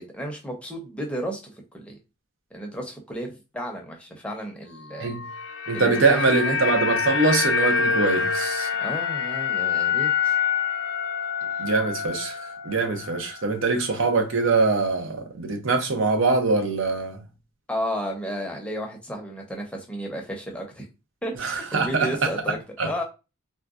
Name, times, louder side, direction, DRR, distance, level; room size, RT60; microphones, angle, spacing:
voice 1, 0.0-2.0 2.5-5.1 5.7-6.6 8.8-10.4 17.7-20.9 21.2-23.0, equal, 5° left, 0.6 m, -33 dB
sound 1, 5.1-13.4 13.7-13.9, left 6 dB, 60° left, 0.5 m, -26 dB
voice 2, 5.7-8.7 11.6-12.4 12.6-17.2 21.4-22.1 22.8-22.9, right 3 dB, 75° right, 0.6 m, -23 dB
3.8 x 2.1 x 2.4 m
head